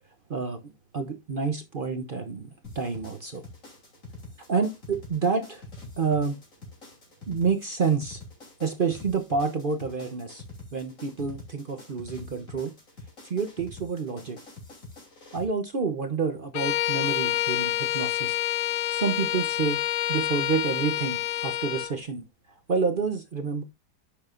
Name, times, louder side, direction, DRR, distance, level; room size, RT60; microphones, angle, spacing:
voice 1, 0.9-2.5 2.7-3.4 4.5-5.6 6.0-6.4 7.3-8.2 8.6-10.4 10.7-12.7 13.2-14.4 15.3-18.4 18.9-19.8 20.1-22.2 22.7-23.6, right 5 dB, 60° right, 8 dB, 0.5 m, -28 dB
sound 1, 2.6-15.4, left 2 dB, 45° left, 3.5 m, -46 dB
Bowed string instrument, 16.5-21.9, left 13 dB, 85° left, 1.4 m, -28 dB
10.0 x 6.9 x 2.5 m, 0.23 s
omnidirectional pair, 2.0 m